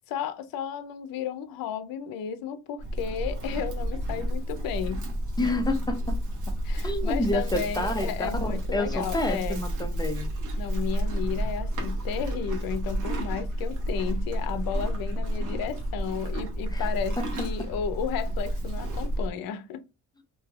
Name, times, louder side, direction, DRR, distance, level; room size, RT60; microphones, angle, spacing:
voice 1, 0.1-5.1 6.6-9.6 10.6-19.8, left 8 dB, 85° left, 0.5 m, -33 dB
Livestock farm animals working animals, 2.8-19.3, right 1 dB, 60° right, 1.1 m, -30 dB
voice 2, 5.4-6.2 6.8-8.1 8.4-10.3 16.7-16.8 17.2-17.3, left 2 dB, 10° left, 0.5 m, -29 dB
3.2 x 2.6 x 2.3 m
cardioid pair, 110°, 34 cm